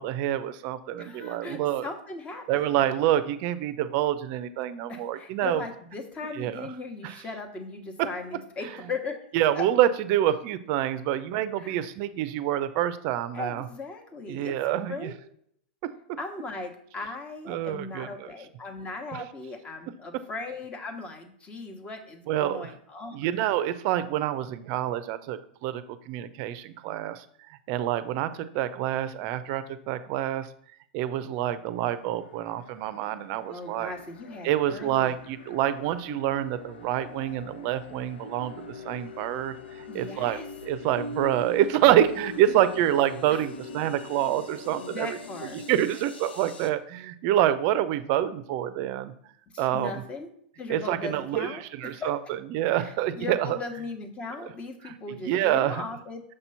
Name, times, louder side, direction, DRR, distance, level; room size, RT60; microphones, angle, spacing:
voice 1, 0.0-1.9 2.5-5.6 6.4-6.7 7.0-7.2 9.3-13.6 14.3-15.1 17.5-18.1 19.1-19.2 22.3-22.7 23.1-27.2 27.7-30.5 30.9-33.9 34.4-39.5 39.9-45.1 45.4-49.1 49.6-50.0 50.7-52.2 52.5-53.6 54.8-54.9 55.2-55.8, right 12 dB, 50° right, 13 dB, 0.5 m, -27 dB
voice 2, 1.0-2.7 4.9-9.3 9.5-9.6 11.6-11.8 13.3-14.6 14.9-15.1 16.2-23.3 33.5-35.1 39.9-40.4 42.4-42.6 43.3-43.4 44.8-45.6 49.5-50.3 50.6-52.1 52.8-56.2, left 3 dB, 20° left, 5 dB, 1.1 m, -38 dB
sound 1, 31.8-46.7, left 3 dB, 90° left, 0.7 m, -42 dB
6.5 x 2.9 x 5.5 m, 0.64 s
hypercardioid pair, 125°, 5 cm